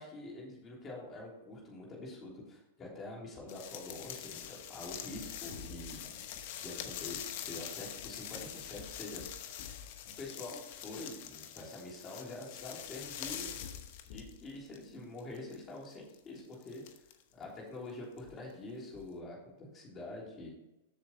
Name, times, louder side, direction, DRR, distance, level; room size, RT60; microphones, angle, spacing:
voice 1, 0.0-6.2 6.6-9.2 10.2-13.5 14.1-16.8 17.4-20.5, left 2 dB, 20° left, -3 dB, 3.2 m, -46 dB
sound 1, 3.5-14.8 15.2-17.4 18.2-18.3 18.9-19.1, left 10 dB, 50° left, 1.0 m, -44 dB
7.8 x 6.8 x 4.3 m, 0.91 s
hypercardioid pair, 145°, 0 cm